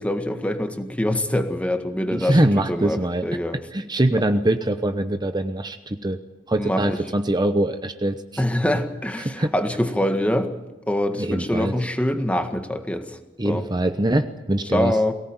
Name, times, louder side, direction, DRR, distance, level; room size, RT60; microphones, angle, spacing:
voice 1, 0.0-3.6 6.6-7.0 8.4-10.5 10.9-13.2 13.4-13.7 14.7-15.1, left 1 dB, 5° left, 6 dB, 1.8 m, -24 dB
voice 2, 2.1-3.3 3.7-6.2 6.5-8.2 9.2-9.5 11.2-11.7 13.4-14.9, right 1 dB, 20° right, 8 dB, 0.9 m, -23 dB
22.5 x 18.0 x 9.0 m, 1.1 s
head